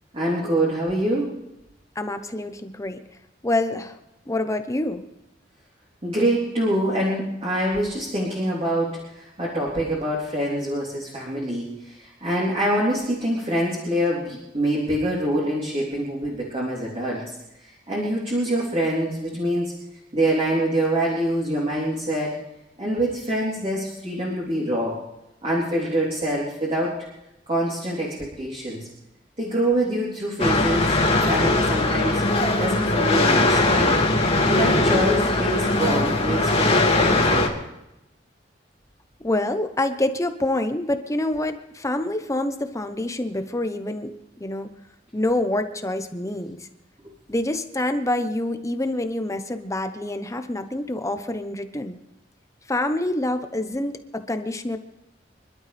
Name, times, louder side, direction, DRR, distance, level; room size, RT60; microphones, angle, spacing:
voice 1, 0.1-1.3 6.0-17.2 17.6-19.7 20.1-22.3 22.8-25.0 25.4-27.0 27.5-28.9 29.4-31.0 31.2-32.2 32.6-34.0 34.4-37.5 47.0-47.1, right 1 dB, 35° right, -5 dB, 3.5 m, -25 dB
voice 2, 1.9-3.0 3.4-4.0 4.3-5.0 39.2-44.1 44.4-44.7 45.1-46.7 47.3-52.0 52.7-54.8, left 1 dB, 15° left, 8 dB, 0.9 m, -26 dB
sound 1, 30.4-37.5, left 2 dB, 35° left, 2.3 m, -20 dB
26.5 x 12.0 x 3.5 m, 0.89 s
head